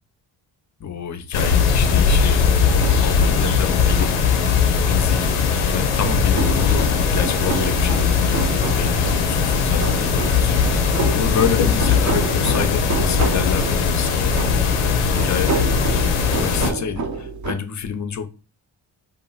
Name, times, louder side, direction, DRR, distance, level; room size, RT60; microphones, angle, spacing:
voice 1, 0.8-4.1 4.9-5.3 5.7-8.5 8.8-10.5 11.1-14.8 15.1-15.6 16.1-18.3, left 8 dB, 35° left, 0.5 m, -28 dB
sound 1, 1.3-16.7, left 6 dB, 85° left, 0.6 m, -19 dB
sound 2, 2.8-17.5, right 4 dB, 35° right, 0.6 m, -30 dB
sound 3, 6.3-12.3, right 2 dB, 75° right, 1.4 m, -35 dB
2.9 x 2.4 x 2.3 m
supercardioid pair, 45°, 50 cm